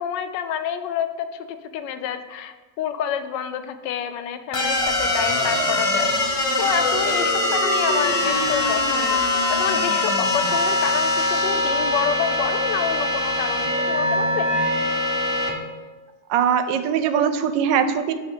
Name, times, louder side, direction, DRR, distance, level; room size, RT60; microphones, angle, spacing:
voice 1, 0.0-6.2 6.6-9.2 9.5-14.6, left 8 dB, 85° left, 10 dB, 1.2 m, -28 dB
demolecularizing beam, 4.5-15.5, left 1 dB, 30° left, 0.6 m, -22 dB
voice 2, 16.3-18.1, right 8 dB, 90° right, 9 dB, 1.3 m, -21 dB
8.5 x 2.9 x 5.9 m, 1.3 s
omnidirectional pair, 1.9 m